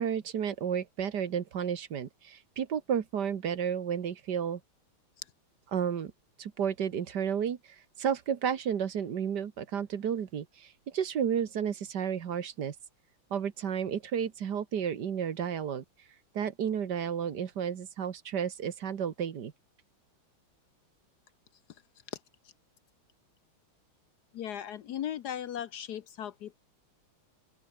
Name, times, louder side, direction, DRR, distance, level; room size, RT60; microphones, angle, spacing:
voice 1, 0.0-4.6 5.7-6.1 6.4-7.6 8.0-12.8 13.3-15.8 16.3-19.5, right 8 dB, 55° right, 1.8 m, -32 dB
voice 2, 24.3-26.6, left 10 dB, 65° left, 1.1 m, -37 dB
open air
omnidirectional pair, 2.3 m